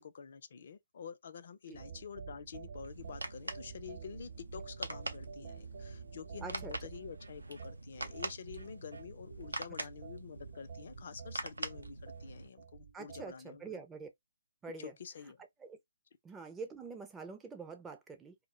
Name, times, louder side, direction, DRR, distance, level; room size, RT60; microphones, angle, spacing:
voice 1, 0.0-13.8 14.8-15.4, left 7 dB, 55° left, 0.4 m, -48 dB
sound 1, 1.7-13.3, right 6 dB, 55° right, 0.8 m, -49 dB
sound 2, 2.8-12.5, right 2 dB, 85° right, 0.4 m, -44 dB
voice 2, 6.4-6.7 12.9-14.1 14.6-14.9 15.6-15.8 16.2-18.4, right 4 dB, 10° right, 0.4 m, -45 dB
2.1 x 2.1 x 2.8 m
figure-of-eight pair, 140°, 0 cm